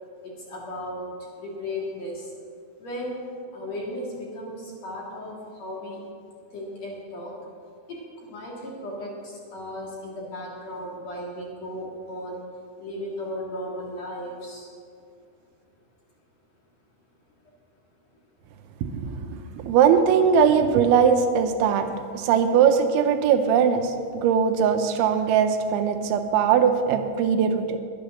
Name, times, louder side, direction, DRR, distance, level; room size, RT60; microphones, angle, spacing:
voice 1, 0.2-1.1 1.4-2.3 2.8-6.0 6.5-7.3 7.9-12.4 12.8-14.7, left 1 dB, 55° left, -2 dB, 2.0 m, -35 dB
voice 2, 18.8-21.9 22.1-27.8, right 7 dB, 80° right, 7 dB, 2.8 m, -20 dB
11.5 x 10.5 x 6.4 m, 2.3 s
omnidirectional pair, 5.7 m